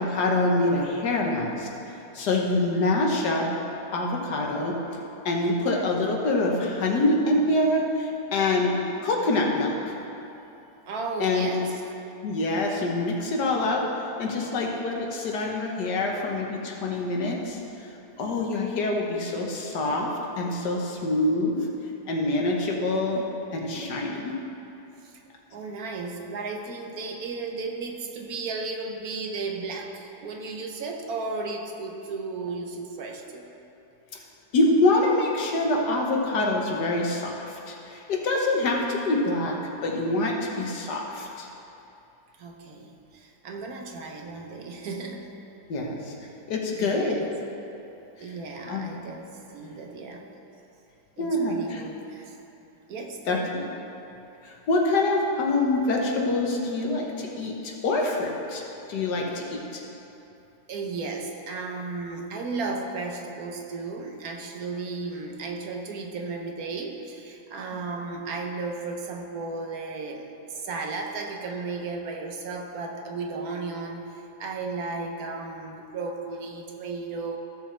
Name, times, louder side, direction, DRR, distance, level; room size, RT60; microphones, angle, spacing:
voice 1, 0.0-3.5 3.9-4.8 5.3-8.7 9.0-9.9 11.2-11.5 12.2-13.8 14.2-17.6 18.2-20.1 20.4-21.6 22.1-23.2 23.5-24.3 34.5-41.5 45.7-46.1 46.5-47.2 48.7-48.9 51.2-51.8 53.3-53.6 54.4-58.6 58.9-59.8, left 2 dB, 75° left, -1 dB, 1.7 m, -25 dB
voice 2, 10.8-11.8 24.0-24.3 25.0-25.2 25.5-33.5 42.4-45.3 46.6-47.3 48.2-50.2 51.2-52.4 52.9-53.6 60.7-77.4, right 3 dB, 65° right, 2 dB, 1.3 m, -34 dB
15.0 x 6.9 x 3.3 m, 2.9 s
omnidirectional pair, 1.8 m